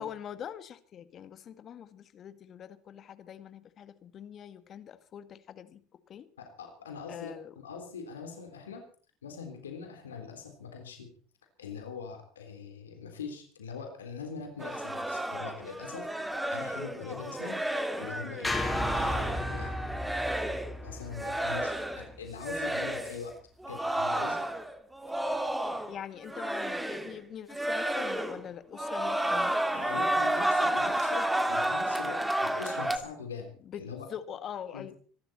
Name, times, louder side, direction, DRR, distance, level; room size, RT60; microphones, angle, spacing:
voice 1, 0.0-5.8 6.1-6.3 7.1-7.5 25.9-30.1 33.7-33.8 34.1-34.9, left 9 dB, 45° left, 11 dB, 1.9 m, -43 dB
voice 2, 6.4-8.8 9.2-11.1 11.6-16.1 16.5-17.6 18.0-18.5 19.0-20.1 20.8-23.4 23.7-24.4 25.2-25.4 29.7-34.1 34.7-34.9, left 6 dB, 90° left, 4 dB, 3.5 m, -42 dB
sound 1, 14.6-20.8 21.1-22.1 22.4-23.2 23.6-26.0 26.2-27.2 27.5-28.5 28.7-33.0, right 1 dB, 10° right, 2.5 m, -31 dB
sound 2, 18.4-22.7, left 1 dB, 10° left, 4.0 m, -35 dB
25.5 x 12.0 x 4.3 m, 0.43 s
hypercardioid pair, 75°, 0 cm